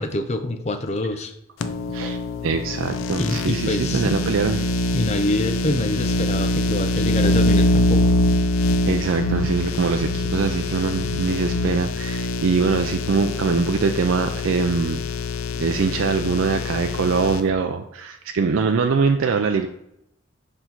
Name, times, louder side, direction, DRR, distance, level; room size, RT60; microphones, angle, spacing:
voice 1, 0.0-1.3 3.2-4.2 4.9-8.1, left 1 dB, 30° left, 7 dB, 0.5 m, -25 dB
sound 1, 1.6-17.4, left 1 dB, 85° left, 0.5 m, -24 dB
voice 2, 1.9-4.6 8.9-15.0 15.6-19.7, right 5 dB, 80° right, 5 dB, 0.4 m, -23 dB
5.4 x 4.3 x 4.5 m, 0.81 s
head